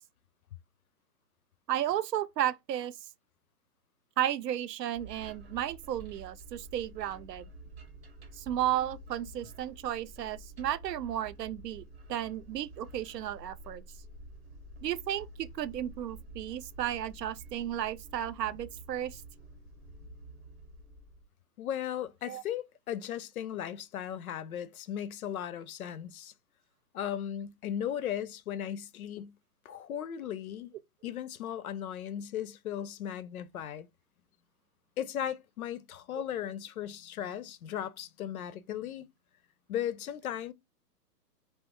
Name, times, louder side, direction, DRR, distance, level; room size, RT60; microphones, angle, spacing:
voice 1, 1.7-2.9 4.2-7.5 8.3-11.8 12.1-13.8 14.8-19.2 22.3-22.4 36.2-36.3, right 11 dB, 80° right, 0.5 m, -33 dB
sound 1, 4.9-21.2, right 1 dB, 35° right, 0.8 m, -49 dB
voice 2, 21.6-26.3 26.9-29.3 29.6-30.7 31.0-33.9 35.0-39.1 39.7-40.5, left 10 dB, 60° left, 0.5 m, -37 dB
2.7 x 2.1 x 3.4 m
hypercardioid pair, 155°, 49 cm